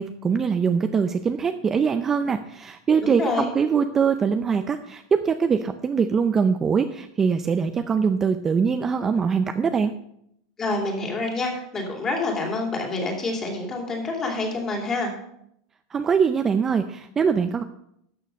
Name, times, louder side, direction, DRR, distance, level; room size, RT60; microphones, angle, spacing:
voice 1, 0.0-9.9 15.9-17.6, right 6 dB, 15° right, 8 dB, 0.5 m, -23 dB
voice 2, 3.0-3.5 10.6-15.1, left 3 dB, 20° left, 1 dB, 2.6 m, -27 dB
12.5 x 6.8 x 5.2 m, 0.74 s
supercardioid pair, 155°, 2 cm